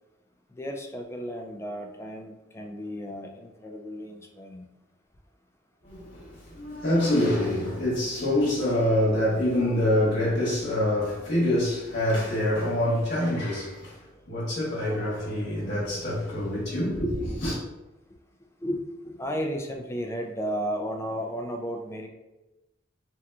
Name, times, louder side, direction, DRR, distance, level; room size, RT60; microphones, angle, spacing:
voice 1, 0.6-4.7 18.6-22.1, equal, 15° left, 0.3 m, -34 dB
voice 2, 5.8-17.6, left 1 dB, 65° left, 1.3 m, -26 dB
3.5 x 2.8 x 2.3 m
head